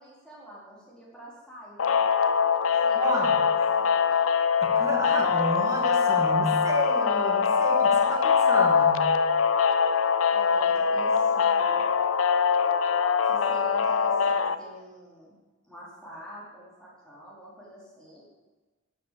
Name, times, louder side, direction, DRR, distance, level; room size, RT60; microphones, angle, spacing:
voice 1, 0.0-4.3 10.3-11.9 13.2-15.4 15.7-18.2, equal, 5° left, -7 dB, 4.1 m, -46 dB
sound 1, 1.8-14.6, left 6 dB, 80° left, 0.5 m, -23 dB
voice 2, 2.7-3.4 4.6-9.2, equal, 15° right, -2 dB, 2.5 m, -32 dB
11.0 x 7.5 x 7.7 m, 1.2 s
head